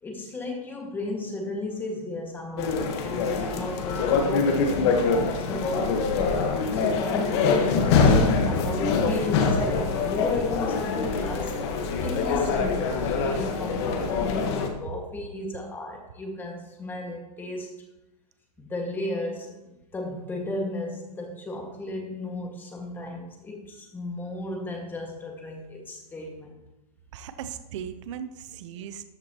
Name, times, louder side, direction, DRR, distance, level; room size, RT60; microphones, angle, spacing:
voice 1, 0.0-6.0 6.7-17.7 18.6-26.6, left 2 dB, 10° left, 1 dB, 1.8 m, -34 dB
sound 1, 2.6-14.7, left 4 dB, 40° left, 1.4 m, -24 dB
voice 2, 27.1-29.1, right 8 dB, 50° right, 11 dB, 0.8 m, -37 dB
13.5 x 8.4 x 3.0 m, 0.96 s
hypercardioid pair, 150°, 20 cm